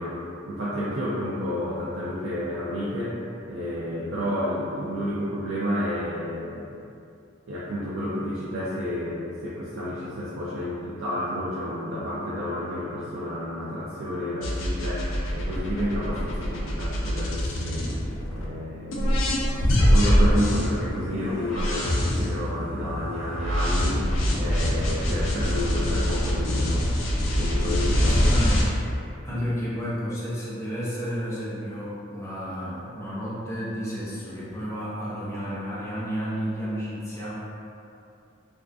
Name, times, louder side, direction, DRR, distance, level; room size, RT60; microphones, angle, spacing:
voice 1, 0.0-3.2 3.5-6.7 7.5-17.9 18.3-24.1 24.4-26.9 27.2-28.2 29.3-29.4, equal, 75° right, -8 dB, 0.4 m, -30 dB
sound 1, 14.4-18.5 18.9-28.6, equal, 75° left, 0.4 m, -24 dB
voice 2, 28.0-28.7 29.2-37.3, equal, 15° left, -10 dB, 0.6 m, -31 dB
2.4 x 2.4 x 2.2 m, 2.6 s
head